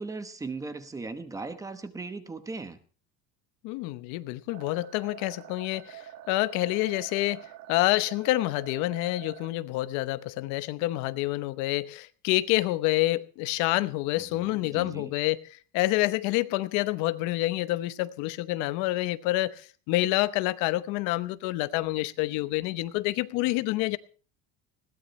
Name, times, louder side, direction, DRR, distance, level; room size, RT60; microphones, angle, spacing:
voice 1, 0.0-2.8 14.2-15.1, right 3 dB, 10° right, 1.0 m, -38 dB
voice 2, 3.6-15.4 15.7-24.0, left 18 dB, 60° left, 0.9 m, -28 dB
sound 1, 4.5-9.5, right 12 dB, 55° right, 1.8 m, -46 dB
20.5 x 17.0 x 3.2 m
cardioid pair, 175°, 33 cm